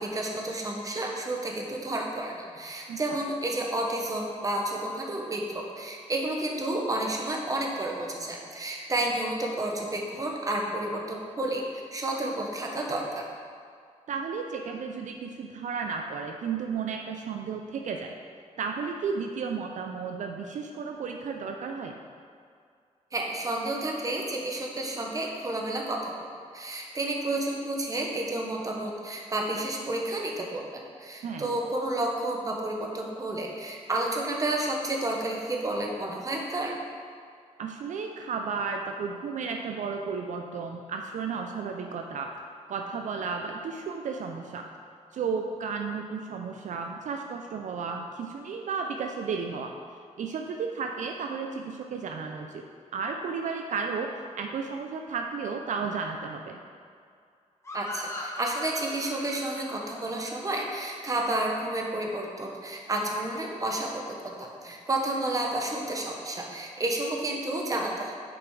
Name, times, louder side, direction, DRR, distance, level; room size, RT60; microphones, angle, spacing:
voice 1, 0.0-13.2 23.1-36.7 57.7-68.1, right 1 dB, 25° right, 0 dB, 1.1 m, -31 dB
voice 2, 14.1-18.1 18.6-22.0 31.2-31.5 37.6-42.3 42.7-44.7 45.1-49.7 50.2-52.6 52.9-56.6, right 5 dB, 70° right, 3 dB, 0.5 m, -33 dB
sound 1, 57.6-61.0, left 1 dB, 20° left, 1.2 m, -41 dB
6.8 x 5.1 x 4.8 m, 2.2 s
cardioid pair, 110°, 13 cm